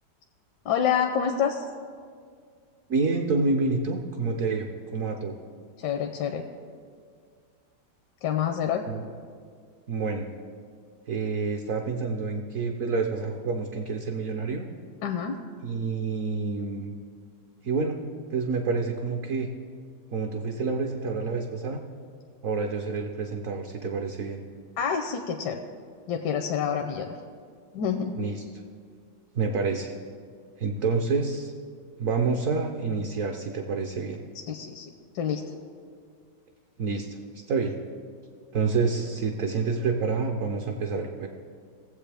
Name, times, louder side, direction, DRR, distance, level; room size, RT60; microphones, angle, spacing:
voice 1, 0.7-1.6 5.8-6.4 8.2-8.9 15.0-15.4 24.8-25.6 26.1-27.2 27.7-28.1 34.5-34.9 35.1-35.4, left 8 dB, 80° left, 4 dB, 1.2 m, -27 dB
voice 2, 2.9-5.3 8.9-9.0 9.9-10.3 11.1-14.6 15.6-16.9 17.6-18.0 18.3-19.5 20.1-21.8 22.4-24.4 28.2-28.4 29.3-29.9 30.6-31.5 32.0-34.2 36.8-37.2 37.5-37.8 38.5-41.3, right 4 dB, 60° right, 2 dB, 1.0 m, -28 dB
18.0 x 7.7 x 3.4 m, 2.1 s
omnidirectional pair, 1.9 m